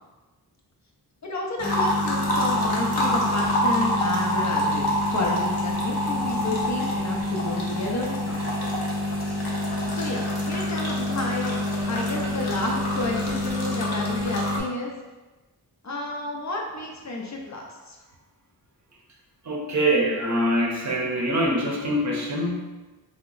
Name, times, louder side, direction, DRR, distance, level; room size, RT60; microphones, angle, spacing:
voice 1, 1.2-9.0 9.9-11.6 11.9-14.9 15.8-18.0, left 2 dB, 45° left, -1 dB, 0.5 m, -31 dB
sound 1, 1.6-14.6, left 1 dB, 70° left, 0.8 m, -26 dB
voice 2, 19.4-22.6, right 1 dB, 45° right, -2 dB, 0.6 m, -24 dB
2.8 x 2.1 x 3.8 m, 1.2 s
wide cardioid pair, 85°, 39 cm